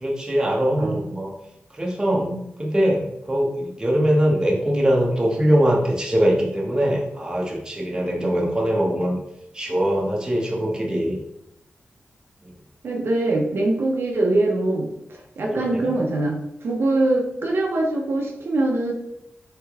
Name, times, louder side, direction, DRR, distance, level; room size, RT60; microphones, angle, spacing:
voice 1, 0.0-1.3 1.7-2.3 2.6-9.2 9.5-11.2 12.4-12.5 15.4-15.9, equal, 20° right, -2 dB, 0.9 m, -22 dB
voice 2, 12.8-18.9, right 2 dB, 75° right, 0 dB, 0.7 m, -23 dB
3.7 x 3.3 x 3.5 m, 0.83 s
wide cardioid pair, 115°, 4 cm